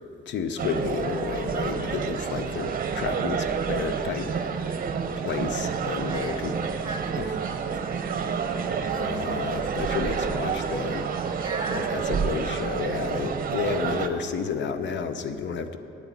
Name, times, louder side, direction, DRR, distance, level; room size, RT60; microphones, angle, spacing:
voice 1, 0.3-4.3 5.2-6.5 7.2-7.3 9.0-11.1 11.9-15.8, left 6 dB, 65° left, 9 dB, 0.8 m, -31 dB
sound 1, 0.6-14.1, right 6 dB, 45° right, 0.9 m, -29 dB
voice 2, 6.1-8.7 11.3-11.9, right 2 dB, 20° right, 4 dB, 1.7 m, -39 dB
9.0 x 8.7 x 8.3 m, 2.7 s
cardioid pair, 90°, 20 cm